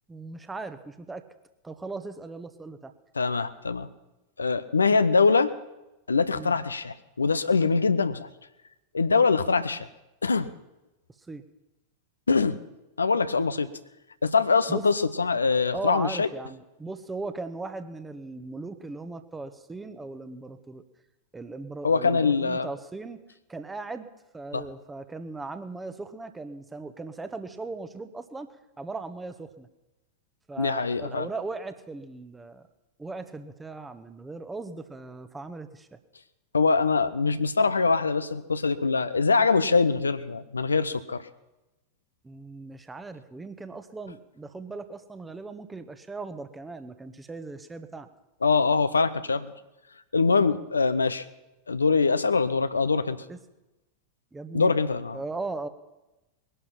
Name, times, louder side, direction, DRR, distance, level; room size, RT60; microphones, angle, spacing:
voice 1, 0.1-1.2 1.6-2.9 6.3-6.6 11.3-11.4 14.7-14.8 15.7-20.8 21.3-23.2 23.5-24.1 24.3-28.5 28.8-29.7 30.5-32.7 33.0-36.0 42.2-48.1 53.3-53.4 54.3-54.7 55.1-55.7, right 3 dB, 10° right, 10 dB, 1.2 m, -38 dB
voice 2, 3.2-3.9 4.4-5.5 6.1-8.3 8.9-9.9 10.2-10.5 12.3-12.6 13.0-13.7 14.2-16.3 21.8-22.7 24.5-24.6 30.6-31.3 36.5-41.2 48.4-49.5 50.1-51.2 51.7-53.2 54.5-55.2, left 4 dB, 75° left, 12 dB, 0.7 m, -23 dB
20.5 x 11.5 x 5.8 m, 1.0 s
figure-of-eight pair, 90°, 0 cm